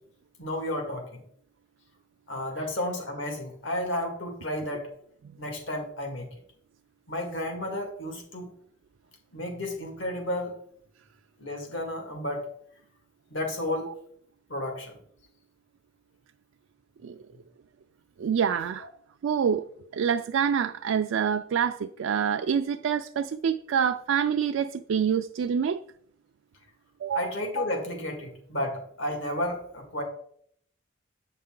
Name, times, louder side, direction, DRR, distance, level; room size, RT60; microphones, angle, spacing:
voice 1, 0.4-1.2 2.3-4.9 5.4-6.3 7.1-8.5 9.3-10.5 11.4-12.5 13.3-13.9 14.5-15.0 18.8-18.9 27.1-30.0, left 1 dB, 80° left, 1.9 m, -32 dB
voice 2, 18.2-18.9 19.2-19.7 19.9-25.8 27.0-27.3, right 7 dB, 90° right, 0.4 m, -26 dB
8.6 x 5.5 x 3.7 m
head